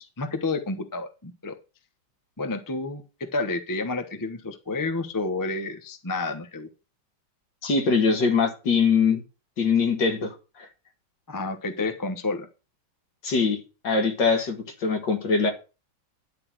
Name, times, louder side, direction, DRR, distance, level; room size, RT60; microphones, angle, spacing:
voice 1, 0.0-1.5 2.4-6.7 11.3-12.5, left 3 dB, 20° left, 0.5 m, -30 dB
voice 2, 7.6-9.2 9.6-10.7 13.2-15.5, left 5 dB, 55° left, 2.4 m, -23 dB
11.0 x 4.1 x 7.6 m
omnidirectional pair, 2.3 m